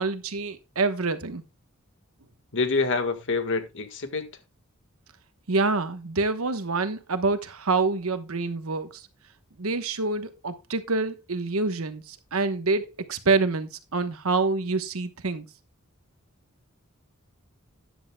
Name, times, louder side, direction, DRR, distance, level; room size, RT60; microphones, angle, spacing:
voice 1, 0.0-1.4 5.5-9.1 9.6-15.5, right 3 dB, 80° right, 1.2 m, -26 dB
voice 2, 2.5-4.3, left 4 dB, 60° left, 1.7 m, -26 dB
13.5 x 10.0 x 2.3 m
head